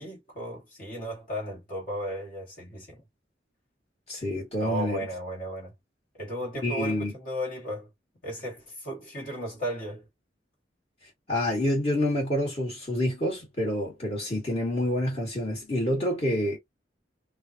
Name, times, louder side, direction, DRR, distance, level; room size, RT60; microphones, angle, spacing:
voice 1, 0.0-3.0 4.6-5.7 6.2-7.9 8.2-10.0, right 1 dB, 50° left, 1.8 m, -35 dB
voice 2, 4.1-5.0 6.6-7.1 11.3-16.6, left 1 dB, 35° left, 1.7 m, -27 dB
3.7 x 2.4 x 2.7 m
head